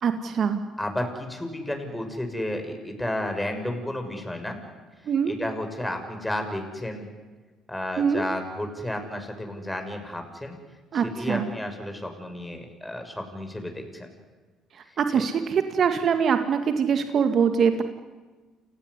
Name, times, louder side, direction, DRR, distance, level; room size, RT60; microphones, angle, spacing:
voice 1, 0.0-0.6 5.1-5.3 8.0-8.2 10.9-11.5 15.0-17.8, right 6 dB, 50° right, 7 dB, 2.0 m, -23 dB
voice 2, 0.8-4.6 5.2-7.1 7.7-10.6 10.9-14.1 15.1-15.2, left 1 dB, 10° left, 5 dB, 6.7 m, -32 dB
29.0 x 16.5 x 9.9 m, 1.3 s
hypercardioid pair, 65°, 0 cm